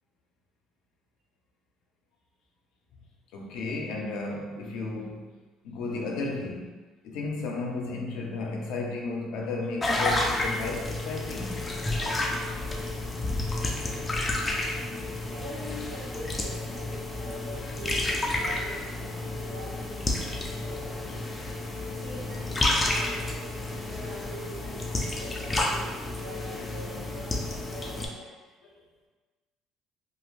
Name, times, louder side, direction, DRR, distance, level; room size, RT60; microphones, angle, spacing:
voice 1, 3.3-5.3 5.6-6.7 7.0-11.6 17.6-17.7, left 3 dB, 75° left, 0 dB, 0.5 m, -33 dB
sound 1, 9.8-28.1, left 2 dB, 15° left, 0.3 m, -31 dB
voice 2, 11.8-12.3 15.3-21.2 21.8-28.3, right 1 dB, 80° right, -6 dB, 1.0 m, -44 dB
2.4 x 2.4 x 3.1 m, 1.3 s
cardioid pair, 140°, 0 cm